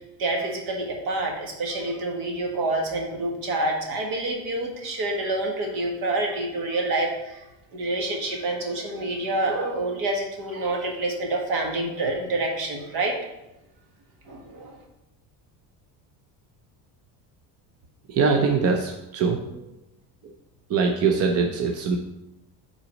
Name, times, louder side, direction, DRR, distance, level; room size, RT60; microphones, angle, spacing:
voice 1, 0.2-7.4 7.7-13.1 14.3-14.8, right 2 dB, 60° right, 1 dB, 1.6 m, -27 dB
voice 2, 18.1-19.6 20.7-22.0, right 5 dB, 35° right, 2 dB, 0.6 m, -22 dB
5.8 x 4.1 x 5.2 m, 0.92 s
cardioid pair, 145°, 42 cm